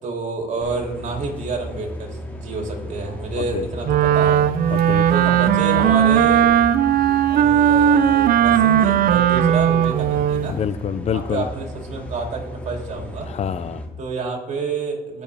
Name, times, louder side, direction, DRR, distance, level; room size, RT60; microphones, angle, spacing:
voice 1, 0.0-4.4 5.1-6.5 7.3-10.6 11.0-13.3 14.0-15.2, right 3 dB, 45° right, 1 dB, 2.8 m, -28 dB
sound 1, 0.6-13.9, equal, 10° left, 2.1 m, -35 dB
Wind instrument woodwind instrument, 3.8-10.5, right 10 dB, 60° right, 0.6 m, -17 dB
voice 2, 4.7-5.1 10.5-11.4 13.3-13.8, left 8 dB, 40° left, 15 dB, 0.4 m, -26 dB
19.0 x 6.9 x 3.5 m, 0.96 s
cardioid pair, 110°, 17 cm